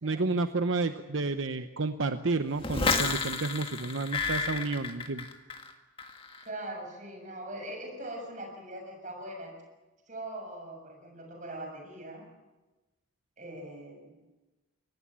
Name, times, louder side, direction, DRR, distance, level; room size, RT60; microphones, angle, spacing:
voice 1, 0.0-5.3, right 3 dB, 70° right, 9 dB, 0.9 m, -30 dB
sound 1, 2.6-5.7 6.0-6.4, left 4 dB, 25° left, 1.8 m, -31 dB
voice 2, 6.4-9.5 10.1-12.3 13.4-14.0, right 1 dB, 40° right, 2 dB, 7.0 m, -41 dB
24.0 x 18.5 x 8.8 m, 1.1 s
head